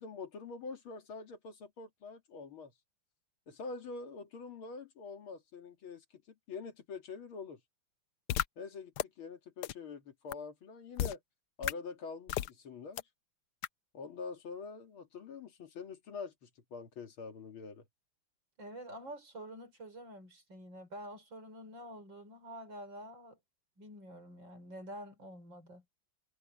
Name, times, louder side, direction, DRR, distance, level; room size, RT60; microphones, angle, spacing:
voice 1, 0.0-2.7 3.5-6.2 6.5-7.6 8.6-11.2 11.6-13.0 13.9-17.8, left 4 dB, 85° left, 2.9 m, -45 dB
sound 1, 8.3-8.4 9.0-9.1 9.6-9.7 10.3-10.4 11.0-11.1 11.6-11.7 12.3-12.5 13.0-13.1 13.6-13.7, left 12 dB, 70° left, 1.1 m, -32 dB
voice 2, 18.6-23.4 23.8-25.8, equal, 65° right, 6.4 m, -48 dB
omnidirectional pair, 2.2 m